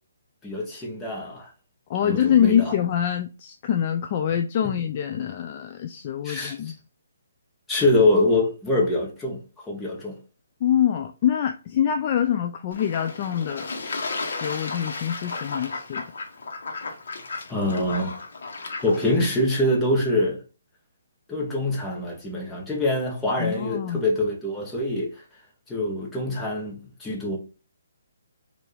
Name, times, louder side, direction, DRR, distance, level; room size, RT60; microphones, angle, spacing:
voice 1, 0.4-1.5 2.0-2.7 4.6-4.7 6.2-6.6 7.7-10.2 17.5-18.1 18.8-20.4 21.3-25.2 25.7-27.4, left 1 dB, 10° left, 1.1 m, -24 dB
voice 2, 1.9-6.7 10.6-13.7 14.2-16.0 23.4-24.0, left 9 dB, 35° left, 0.3 m, -25 dB
Fowl / Bird / Water, 12.7-19.3, left 3 dB, 65° left, 1.1 m, -34 dB
4.4 x 2.6 x 3.3 m
hypercardioid pair, 160°, 0 cm